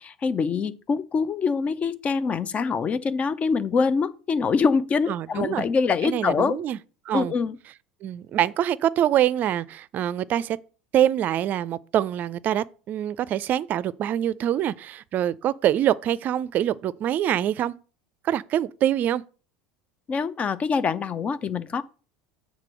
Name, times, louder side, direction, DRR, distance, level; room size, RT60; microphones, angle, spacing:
voice 1, 0.0-6.6 7.1-7.6 20.1-21.8, left 5 dB, 30° left, 0.6 m, -24 dB
voice 2, 5.1-5.7 6.0-6.8 7.1-7.3 8.0-10.6 10.9-17.7 18.2-19.2, right 11 dB, 45° right, 0.4 m, -25 dB
7.4 x 3.7 x 6.1 m
hypercardioid pair, 75°, 4 cm